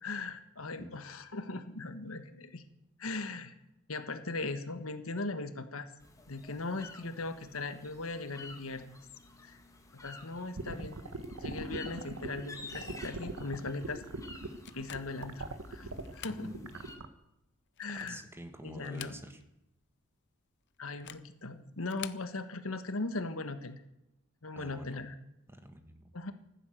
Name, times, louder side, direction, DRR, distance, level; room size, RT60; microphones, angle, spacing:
voice 1, 0.0-2.6 3.0-3.5 3.9-5.9 6.3-9.0 9.4-9.6 10.0-11.0 11.4-14.0 14.7-16.5 17.8-18.2 18.6-19.2 20.8-23.8 24.4-25.1 26.1-26.3, left 3 dB, 70° left, 9 dB, 1.4 m, -39 dB
sound 1, 6.0-17.0, left 3 dB, 15° left, 1.8 m, -52 dB
sound 2, 10.6-17.1, right 2 dB, 85° right, 1.3 m, -41 dB
sound 3, 14.6-15.3 16.0-16.5 16.9-17.0 17.7-18.3 18.8-19.6 19.9-20.0 20.9-21.3 21.8-22.3, left 11 dB, 55° left, 0.7 m, -47 dB
voice 2, 16.3-16.7 18.0-19.4 24.5-25.0 25.5-26.1, equal, 10° right, 7 dB, 1.4 m, -47 dB
15.0 x 11.0 x 7.8 m, 0.87 s
head